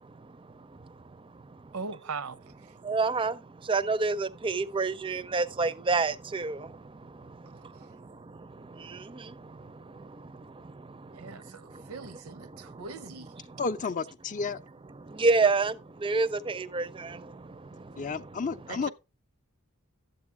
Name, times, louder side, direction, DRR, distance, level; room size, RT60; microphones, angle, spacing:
voice 1, 1.7-2.4 7.7-7.9 11.1-13.3 18.7-18.9, right 4 dB, 85° right, 0.7 m, -40 dB
voice 2, 2.9-3.3 3.7-6.6 15.2-15.7 16.0-17.1, right 3 dB, 25° right, 0.5 m, -26 dB
voice 3, 13.6-14.6 18.0-18.9, left 4 dB, 35° left, 0.5 m, -31 dB
12.5 x 7.9 x 3.6 m
head